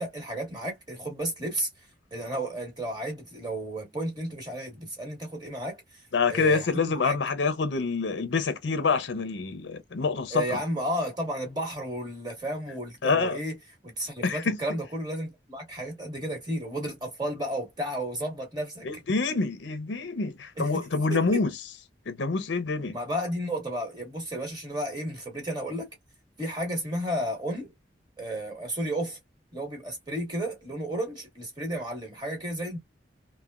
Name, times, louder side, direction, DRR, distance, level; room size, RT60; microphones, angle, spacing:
voice 1, 0.0-1.7 2.1-6.0 6.3-7.2 10.3-13.5 13.8-18.9 20.6-21.4 22.9-25.9 26.4-27.7 28.2-29.2 29.5-32.8, right 1 dB, 20° right, 1.3 m, -33 dB
voice 2, 6.1-10.6 13.0-13.4 14.2-14.6 18.8-21.5 22.1-23.0, left 4 dB, 70° left, 0.5 m, -26 dB
3.2 x 2.1 x 2.2 m
head